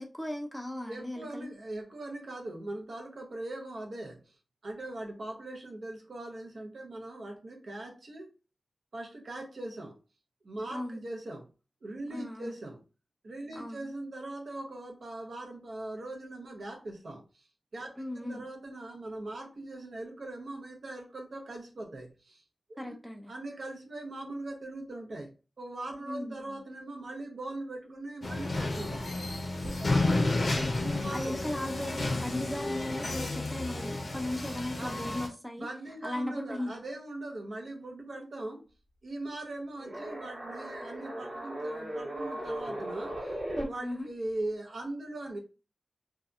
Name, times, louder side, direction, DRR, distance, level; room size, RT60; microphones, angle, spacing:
voice 1, 0.0-1.5 10.7-11.1 12.1-12.6 13.6-13.9 18.0-18.5 22.8-23.3 26.1-26.6 29.9-35.7 36.0-36.7 43.8-44.1, left 1 dB, ahead, 0.4 m, -37 dB
voice 2, 0.9-4.3 4.6-8.3 8.9-10.0 10.4-11.5 11.8-12.8 13.2-17.2 17.7-22.4 22.7-23.0 23.3-29.1 29.6-30.2 30.8-31.3 34.8-35.1 35.6-38.6 39.0-43.4 43.6-45.4, right 2 dB, 70° right, 0.7 m, -40 dB
con mini backho alley cuba, 28.2-35.3, left 2 dB, 55° left, 0.6 m, -31 dB
sound 1, 39.8-43.6, right 1 dB, 50° right, 1.0 m, -37 dB
2.7 x 2.3 x 2.4 m
wide cardioid pair, 110°, 0 cm